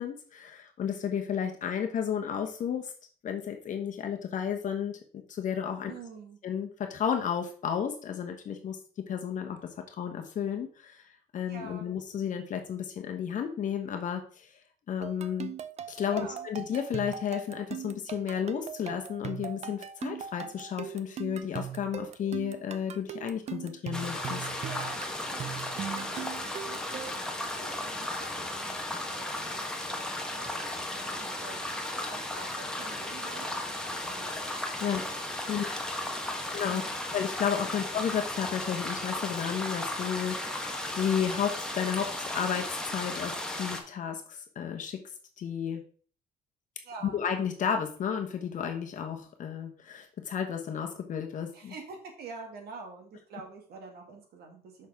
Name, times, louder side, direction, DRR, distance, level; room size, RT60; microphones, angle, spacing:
voice 1, 0.0-2.9 3.2-5.0 5.3-5.9 6.4-8.8 9.1-9.6 9.9-14.6 14.9-15.5 15.9-24.5 34.8-35.0 35.4-35.7 36.5-36.8 37.1-45.0 45.4-45.8 47.0-51.7, left 8 dB, 50° left, 4 dB, 1.0 m, -32 dB
voice 2, 5.8-6.4 11.5-11.9 16.1-16.5 24.6-33.5 33.7-35.1 35.5-35.7 36.0-37.1 37.7-37.9 46.8-47.2 51.5-54.9, right 4 dB, 70° right, 2 dB, 2.0 m, -47 dB
sound 1, 15.0-27.3, right 9 dB, 40° right, 0.5 m, -40 dB
sound 2, 23.9-43.8, left 1 dB, 5° left, 1.2 m, -35 dB
6.4 x 6.1 x 3.5 m, 0.43 s
cardioid pair, 110°, 17 cm